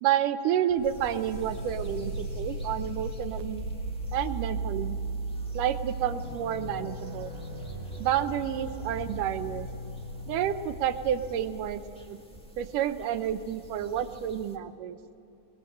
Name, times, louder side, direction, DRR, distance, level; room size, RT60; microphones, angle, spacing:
voice 1, 0.0-3.7 4.1-5.0 5.5-7.3 8.0-9.7 10.3-11.8 12.1-12.2 12.6-15.0, right 10 dB, 85° right, 10 dB, 2.6 m, -29 dB
sound 1, 0.7-11.4, right 2 dB, 70° left, 8.6 m, -36 dB
sound 2, 0.8-14.6, right 1 dB, 5° left, 0.7 m, -50 dB
23.0 x 20.5 x 7.9 m, 2.8 s
omnidirectional pair, 3.6 m